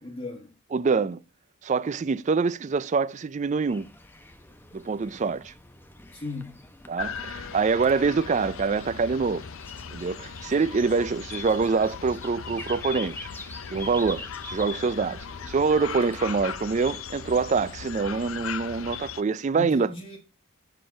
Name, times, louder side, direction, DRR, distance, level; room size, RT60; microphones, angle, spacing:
voice 1, 0.0-0.5 6.1-6.5 19.5-20.2, left 3 dB, 30° left, 1.3 m, -36 dB
voice 2, 0.7-1.2 1.6-3.9 4.7-5.5 6.9-9.4 9.9-13.3 13.7-19.9, right 4 dB, 35° right, 0.3 m, -25 dB
sound 1, 3.7-16.2, left 2 dB, 10° left, 0.7 m, -46 dB
sound 2, 7.0-19.2, left 7 dB, 65° left, 0.6 m, -38 dB
7.4 x 5.3 x 6.8 m
head